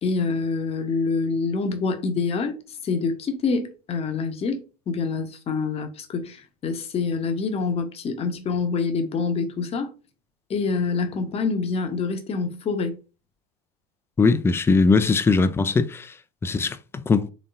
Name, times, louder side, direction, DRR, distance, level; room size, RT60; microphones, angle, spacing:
voice 1, 0.0-2.6 2.8-9.9 10.5-12.9, left 4 dB, 30° left, 0.8 m, -26 dB
voice 2, 14.2-16.1 16.4-17.3, left 4 dB, 10° left, 0.3 m, -20 dB
3.9 x 3.5 x 2.5 m
hypercardioid pair, 80°, 21 cm